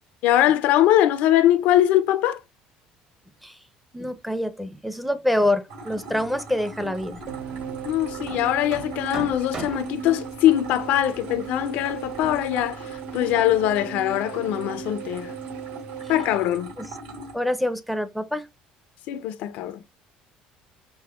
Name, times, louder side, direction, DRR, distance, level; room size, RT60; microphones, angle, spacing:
voice 1, 0.2-2.4 7.8-12.8 13.1-15.3 16.1-16.7 19.1-19.8, left 12 dB, 70° left, 0.4 m, -22 dB
voice 2, 3.9-7.2 16.8-16.9 17.3-18.5, left 1 dB, ahead, 0.5 m, -26 dB
sound 1, 5.7-17.3, right 1 dB, 85° right, 1.7 m, -41 dB
Hammer, 6.9-13.8, right 3 dB, 40° right, 1.0 m, -43 dB
sound 2, 7.3-16.4, right 8 dB, 60° right, 0.4 m, -37 dB
5.2 x 2.0 x 2.2 m
supercardioid pair, 95°, 3 cm